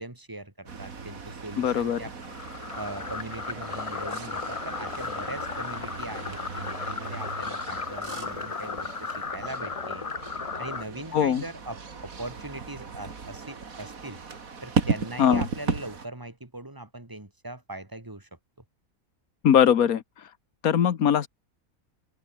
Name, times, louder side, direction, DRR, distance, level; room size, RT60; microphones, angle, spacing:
voice 1, 0.0-2.1 2.8-10.1 10.6-14.2 14.6-18.3, right 1 dB, 15° right, 2.4 m, -40 dB
sound 1, 0.7-16.1, right 5 dB, 75° right, 2.6 m, -36 dB
voice 2, 1.6-2.0 11.1-11.4 15.2-15.4 19.4-20.0 20.6-21.3, left 8 dB, 90° left, 1.6 m, -21 dB
sound 2, 2.2-10.8, left 5 dB, 30° left, 0.7 m, -35 dB
omnidirectional pair, 1.5 m